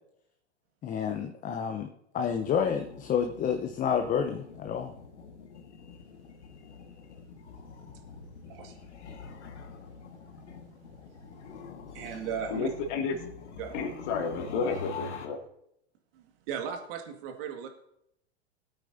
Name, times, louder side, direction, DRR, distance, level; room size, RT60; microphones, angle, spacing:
voice 1, 0.8-4.9, left 7 dB, 25° left, 5 dB, 0.8 m, -29 dB
sound 1, 2.3-15.3, left 5 dB, 80° left, 1.7 m, -45 dB
voice 2, 8.5-8.8 11.9-12.7 13.6-13.8 16.1-17.7, right 7 dB, 55° right, 4 dB, 2.0 m, -37 dB
voice 3, 12.5-13.1 13.7-15.4, left 4 dB, 50° left, 1 dB, 2.4 m, -31 dB
19.5 x 8.7 x 2.7 m, 0.76 s
hypercardioid pair, 110°, 34 cm